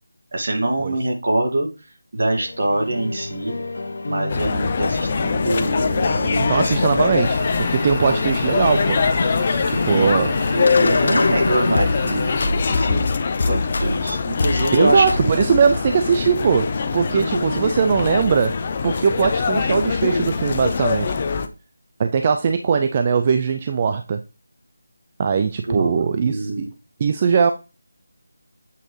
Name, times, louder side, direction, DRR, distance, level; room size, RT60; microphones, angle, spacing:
voice 1, 0.3-1.7 2.1-3.6 4.1-7.2 9.9-12.3 12.7-13.0 13.5-15.3 17.1-17.7 25.7-26.7, right 1 dB, 50° right, 2.0 m, -24 dB
sound 1, 2.3-12.1 12.4-14.1 14.4-14.8 15.1-15.8, left 3 dB, 55° left, 0.9 m, -26 dB
sound 2, 4.3-21.5, left 5 dB, 30° left, 0.5 m, -23 dB
voice 2, 6.4-9.0 9.7-10.4 14.7-18.6 18.8-21.2 22.0-24.2 25.2-26.7 27.0-27.5, right 6 dB, 25° right, 0.3 m, -20 dB
sound 3, 7.2-12.4, left 2 dB, 15° left, 1.1 m, -30 dB
8.0 x 3.9 x 3.2 m
figure-of-eight pair, 170°, 0 cm